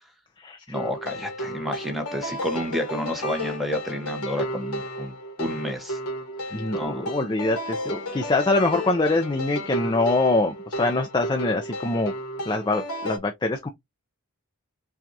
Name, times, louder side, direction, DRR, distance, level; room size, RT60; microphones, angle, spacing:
sound 1, 0.7-13.2, equal, 85° left, 1.1 m, -33 dB
voice 1, 0.7-6.0 6.8-7.1, equal, ahead, 0.9 m, -30 dB
voice 2, 6.5-12.1 12.5-13.7, left 2 dB, 20° left, 0.4 m, -24 dB
5.8 x 2.3 x 2.6 m
head